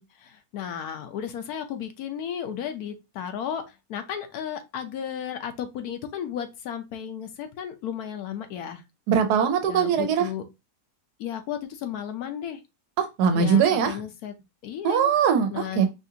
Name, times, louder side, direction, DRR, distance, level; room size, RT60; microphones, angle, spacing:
voice 1, 0.0-8.8 9.7-10.4 11.2-12.6 13.3-14.3 14.6-15.1 15.5-15.8, left 9 dB, 75° left, 1.2 m, -34 dB
voice 2, 9.1-10.3 13.0-14.0 14.8-15.9, right 7 dB, 80° right, 1.3 m, -21 dB
5.1 x 2.5 x 2.8 m
omnidirectional pair, 1.7 m